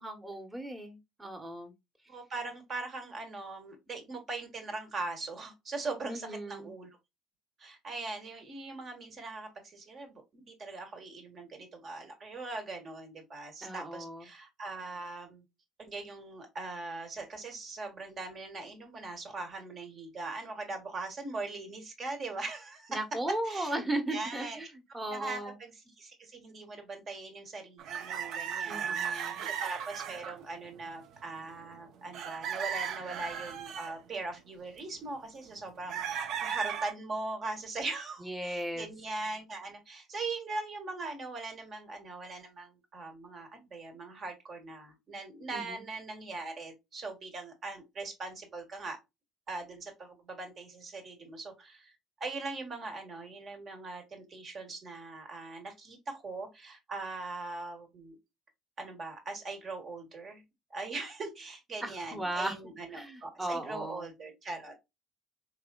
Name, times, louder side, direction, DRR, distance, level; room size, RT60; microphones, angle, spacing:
voice 1, 0.0-1.7 6.1-6.7 13.6-14.2 22.9-24.7 24.9-25.5 28.7-29.4 38.2-38.9 45.5-45.8 61.8-64.0, right 1 dB, 15° right, 1.1 m, -36 dB
voice 2, 2.1-6.9 7.6-15.4 15.8-23.0 23.4-23.7 24.1-24.6 25.1-49.0 49.5-51.9 52.2-58.2 58.8-60.4 60.7-64.8, right 3 dB, 45° right, 1.3 m, -41 dB
sound 1, 27.8-30.4 30.8-31.2 31.6-31.8 32.1-33.9 35.9-36.9, right 8 dB, 65° right, 0.5 m, -36 dB
3.7 x 2.9 x 2.2 m
hypercardioid pair, 70°, 0 cm